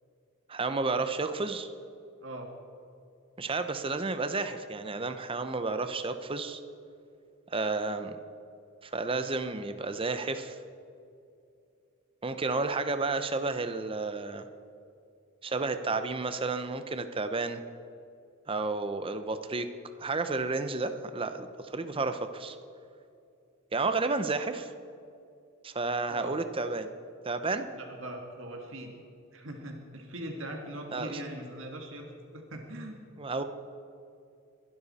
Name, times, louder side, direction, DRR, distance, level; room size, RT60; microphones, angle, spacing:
voice 1, 0.5-1.7 3.4-6.6 7.5-8.2 8.8-10.6 12.2-14.5 15.4-17.6 18.5-19.7 20.0-22.6 23.7-24.7 25.6-26.9 27.2-27.7 30.9-31.2 33.2-33.4, right 3 dB, 25° right, 9 dB, 0.7 m, -31 dB
voice 2, 27.7-28.9 29.3-32.0 32.3-33.1, right 1 dB, 65° right, 2 dB, 1.8 m, -41 dB
22.0 x 12.0 x 4.2 m, 2.5 s
head